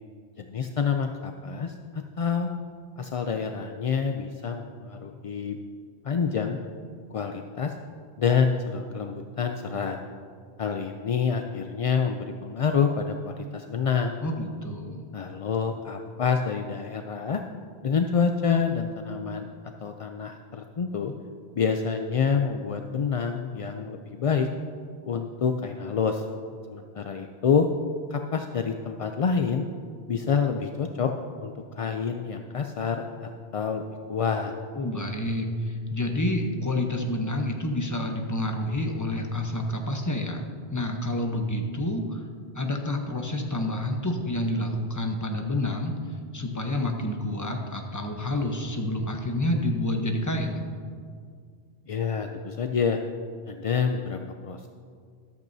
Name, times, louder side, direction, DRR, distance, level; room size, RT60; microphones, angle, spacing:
voice 1, 0.4-2.5 3.0-5.6 6.0-6.6 7.1-7.7 8.2-10.0 10.6-14.2 15.1-17.4 17.8-19.5 19.8-21.1 21.6-24.5 25.1-26.2 26.7-27.7 28.1-29.6 30.1-31.1 31.4-33.8 34.1-34.5 51.9-53.0 53.5-54.7, left 6 dB, 50° left, 5 dB, 0.4 m, -27 dB
voice 2, 14.2-15.0 34.7-40.4 40.7-42.2 42.6-46.0 46.3-50.6, left 1 dB, 20° left, 3 dB, 0.9 m, -28 dB
13.5 x 12.0 x 2.7 m, 2.1 s
omnidirectional pair, 1.1 m